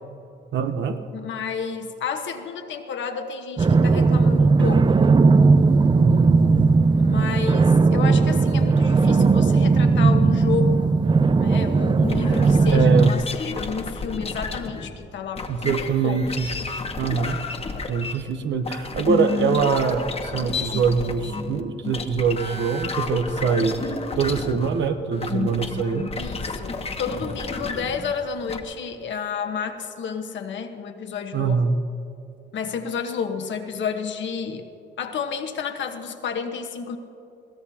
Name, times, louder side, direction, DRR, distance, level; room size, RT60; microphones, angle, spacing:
voice 1, 0.5-1.0 6.0-6.7 12.7-13.1 15.5-16.5 17.0-17.4 17.9-26.1 31.3-31.8, right 6 dB, 65° right, 7 dB, 0.8 m, -24 dB
voice 2, 1.1-4.9 7.0-10.9 11.4-16.2 26.2-31.7 32.5-34.7 35.0-37.0, left 6 dB, 70° left, 5 dB, 1.2 m, -31 dB
sound 1, 3.6-13.1, right 4 dB, 25° right, 0.4 m, -17 dB
sound 2, 12.1-14.9 15.4-28.6, left 4 dB, 30° left, 1.1 m, -31 dB
22.0 x 16.0 x 2.8 m, 2.9 s
cardioid pair, 90°, 20 cm